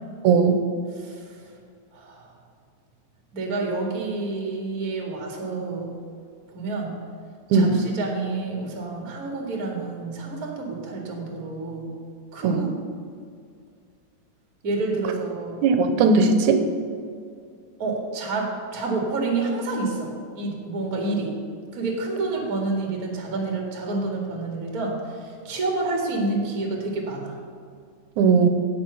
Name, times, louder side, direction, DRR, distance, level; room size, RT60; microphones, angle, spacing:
voice 1, 0.9-1.4 1.9-2.3 3.3-5.9 6.5-7.0 7.5-11.9 12.3-12.7 14.6-15.7 17.8-21.4 21.7-27.4, right 3 dB, 30° right, 0 dB, 2.2 m, -29 dB
voice 2, 15.6-16.6 28.2-28.5, right 5 dB, 80° right, 7 dB, 2.4 m, -18 dB
17.0 x 6.9 x 5.6 m, 2.2 s
omnidirectional pair, 3.5 m